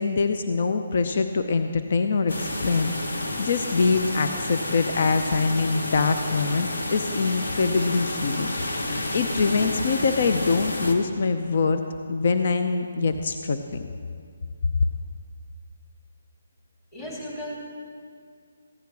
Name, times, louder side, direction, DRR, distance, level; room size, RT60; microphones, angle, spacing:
voice 1, 0.0-8.8 9.1-11.8 12.1-13.9, left 4 dB, 55° left, 7 dB, 0.6 m, -24 dB
sound 1, 2.3-10.9, left 1 dB, 80° left, 1.7 m, -30 dB
voice 2, 16.9-17.6, equal, 20° left, -5 dB, 3.2 m, -35 dB
15.5 x 10.0 x 4.7 m, 2.2 s
hypercardioid pair, 160°, 0 cm